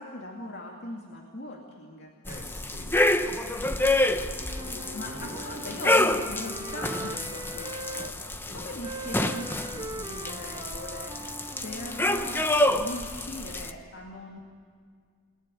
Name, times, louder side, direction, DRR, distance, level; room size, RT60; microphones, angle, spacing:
voice 1, 0.0-2.1 4.6-11.2 11.6-14.4, left 1 dB, 50° left, 1 dB, 2.3 m, -40 dB
voice 2, 2.2-2.9 3.2-3.7 4.4-5.8 8.4-8.7, left 1 dB, 35° left, 1 dB, 6.2 m, -45 dB
sound 1, 2.3-13.7, left 1 dB, 10° left, 0.9 m, -28 dB
Wind instrument woodwind instrument, 4.2-8.1 8.8-12.3, right 2 dB, 20° right, 1.2 m, -41 dB
28.5 x 21.0 x 9.9 m, 2.1 s
head